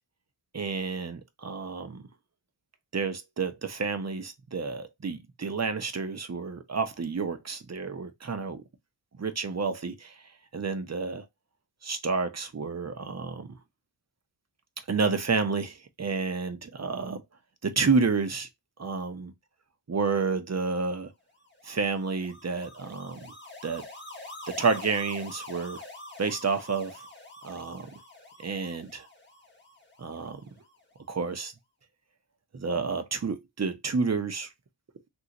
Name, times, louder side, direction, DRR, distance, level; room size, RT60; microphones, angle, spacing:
voice 1, 0.5-2.0 2.9-8.6 9.2-10.2 10.5-11.3 11.8-13.6 14.9-17.2 17.6-18.5 18.8-19.3 19.9-21.1 21.6-23.3 23.6-23.8 24.5-25.8 26.2-27.0 27.4-27.9 28.4-29.1 30.0-30.5 31.1-31.5 32.5-34.5, right 4 dB, 35° right, 0.7 m, -30 dB
sound 1, 21.5-30.7, left 2 dB, 20° left, 1.0 m, -46 dB
3.0 x 2.6 x 2.8 m
wide cardioid pair, 55°, 49 cm